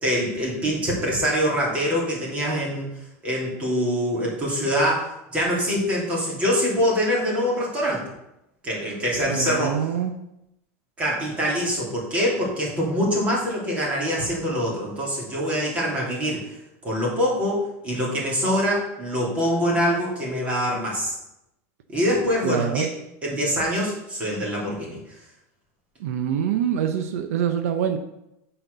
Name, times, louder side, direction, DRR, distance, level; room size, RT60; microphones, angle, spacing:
voice 1, 0.0-2.9 3.2-8.0 8.6-9.9 11.0-16.5 16.8-21.2 21.9-22.9 23.2-25.0, equal, 15° right, -4 dB, 2.9 m, -24 dB
voice 2, 9.3-10.1 22.4-22.9 26.0-28.0, right 9 dB, 75° right, 7 dB, 0.8 m, -25 dB
9.0 x 4.6 x 6.7 m, 0.86 s
supercardioid pair, 170°, 8 cm